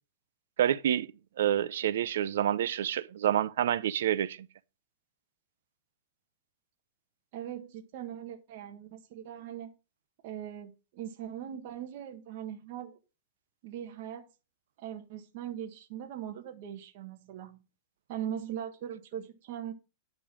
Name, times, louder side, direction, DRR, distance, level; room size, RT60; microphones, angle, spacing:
voice 1, 0.6-1.1 1.4-4.5, right 10 dB, 80° right, 0.7 m, -28 dB
voice 2, 7.3-9.7 10.2-13.0 13.6-14.3 14.8-17.6 18.1-19.7, right 10 dB, 50° right, 1.4 m, -40 dB
10.5 x 5.3 x 6.1 m
supercardioid pair, 155°, 0 cm